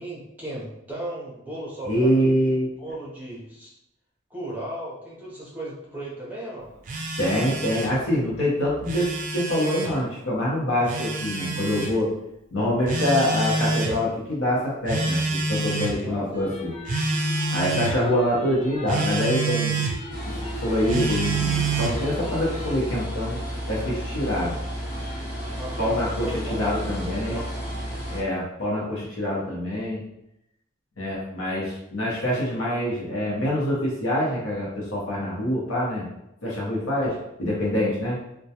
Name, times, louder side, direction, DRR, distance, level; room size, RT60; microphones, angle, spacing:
voice 1, 0.0-3.7 4.3-6.7 16.0-16.5 25.5-26.7 26.9-27.5, right 1 dB, 10° right, -6 dB, 0.7 m, -36 dB
voice 2, 1.8-2.7 7.2-12.1 12.5-16.7 17.5-19.8 20.2-23.4 23.7-24.6 25.8-27.4 28.1-30.0 31.0-36.1 36.4-38.2, left 1 dB, 75° left, -5 dB, 0.8 m, -25 dB
Telephone, 6.9-8.0 8.7-9.9 10.9-11.9 12.9-14.0 14.9-16.0 16.9-18.0 18.9-20.0 20.9-22.0, right 3 dB, 40° right, 0.4 m, -27 dB
sound 1, 16.3-22.7, left 2 dB, 30° left, 0.4 m, -39 dB
sound 2, 20.1-28.2, equal, 55° left, 1.1 m, -32 dB
2.2 x 2.2 x 2.7 m, 0.83 s
head